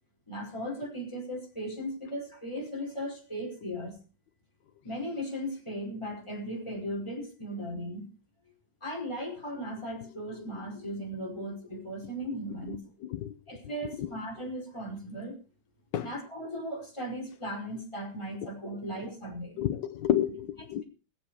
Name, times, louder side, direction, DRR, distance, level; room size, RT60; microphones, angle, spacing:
voice 1, 0.3-4.0 4.8-8.1 8.8-12.8 13.5-15.4 16.0-19.6, equal, 15° left, -1 dB, 5.5 m, -37 dB
voice 2, 19.6-20.8, left 11 dB, 70° left, 5 dB, 1.5 m, -30 dB
20.5 x 8.4 x 4.9 m, 0.36 s
omnidirectional pair, 2.2 m